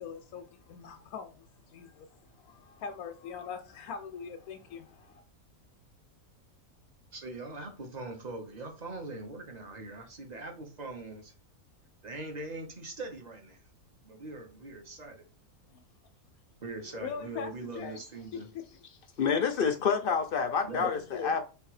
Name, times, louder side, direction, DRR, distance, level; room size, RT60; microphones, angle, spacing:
voice 1, 0.0-5.2 15.7-15.8 17.0-17.5 17.8-18.0 20.8-21.4, left 6 dB, 85° left, 1.1 m, -41 dB
voice 2, 7.1-11.3 12.0-13.6 14.0-15.3 16.6-18.5 20.6-21.1, right 2 dB, 35° right, 1.0 m, -42 dB
voice 3, 19.2-21.4, left 6 dB, 60° left, 0.6 m, -28 dB
3.4 x 3.2 x 4.8 m
omnidirectional pair, 1.5 m